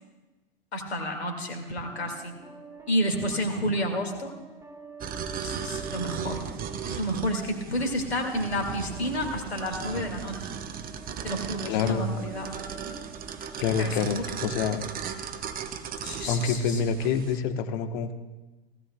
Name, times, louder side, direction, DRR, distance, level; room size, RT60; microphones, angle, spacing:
voice 1, 0.7-2.3 2.9-4.3 5.4-6.5 6.9-10.4 11.2-12.5 13.8-14.2 16.0-16.8, equal, 90° left, 4 dB, 2.1 m, -30 dB
sound 1, 1.8-14.9, right 4 dB, 10° right, 1.4 m, -47 dB
sound 2, 5.0-17.4, right 7 dB, 30° right, 0.9 m, -37 dB
voice 2, 11.7-12.1 13.6-14.9 16.3-18.1, left 6 dB, 55° left, 8 dB, 1.1 m, -27 dB
19.0 x 15.5 x 2.3 m, 1.1 s
hypercardioid pair, 95°, 31 cm